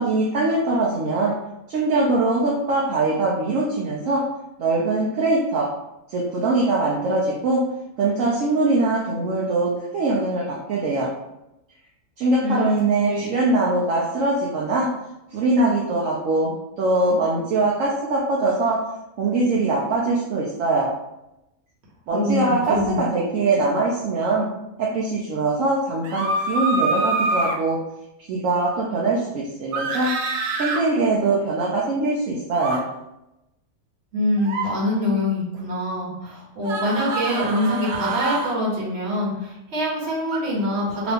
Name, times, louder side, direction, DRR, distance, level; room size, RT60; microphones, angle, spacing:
voice 1, 0.0-1.3 1.7-4.2 4.6-5.7 6.1-7.6 8.0-11.1 12.2-14.9 15.3-18.8 19.2-20.9 22.1-24.5 24.8-27.8 28.3-30.1 30.6-32.8, right 2 dB, 70° right, -4 dB, 1.0 m, -22 dB
voice 2, 12.4-12.8 13.1-13.3 22.1-23.0 34.1-41.1, left 1 dB, 50° right, -4 dB, 1.2 m, -24 dB
sound 1, 26.0-27.6 29.7-30.8 32.5-32.8 34.4-34.7 36.6-38.5 40.3-40.4, right 2 dB, 90° right, 0.4 m, -25 dB
2.9 x 2.5 x 3.4 m, 0.90 s
omnidirectional pair, 1.5 m